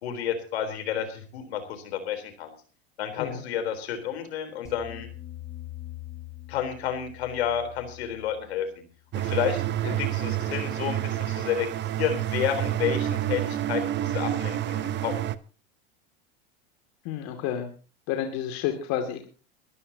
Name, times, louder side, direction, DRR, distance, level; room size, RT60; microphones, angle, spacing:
voice 1, 0.0-2.5 3.0-5.1 6.5-8.7 9.1-9.6 10.0-15.2, left 9 dB, 80° left, 8 dB, 3.9 m, -30 dB
sound 1, 4.6-9.9, left 13 dB, 10° left, 7.8 m, -44 dB
sound 2, 9.1-15.4, right 12 dB, 35° right, 0.9 m, -28 dB
voice 2, 17.0-17.7 18.1-19.3, left 10 dB, 55° left, 4 dB, 2.5 m, -30 dB
22.5 x 14.0 x 2.9 m, 0.37 s
hypercardioid pair, 100°, 32 cm